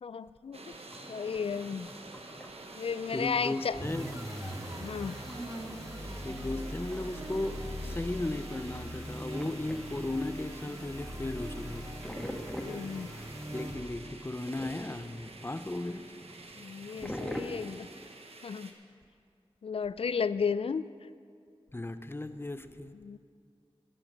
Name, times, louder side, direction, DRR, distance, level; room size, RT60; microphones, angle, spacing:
voice 1, 0.0-0.7 1.1-1.9 2.8-3.8 4.7-5.2 12.6-13.1 16.6-17.9 18.4-18.7 19.6-20.8 23.0-23.2, left 6 dB, 65° left, 0.4 m, -33 dB
sound 1, 0.5-18.7, right 2 dB, 75° right, 1.1 m, -49 dB
sound 2, 0.8-17.4, equal, 5° left, 1.4 m, -47 dB
voice 2, 3.1-4.1 6.2-12.1 13.5-16.1 21.7-22.9, left 2 dB, 20° left, 0.7 m, -36 dB
sound 3, 3.7-14.1, equal, 35° right, 2.0 m, -41 dB
16.0 x 7.6 x 6.1 m
wide cardioid pair, 55°, 10 cm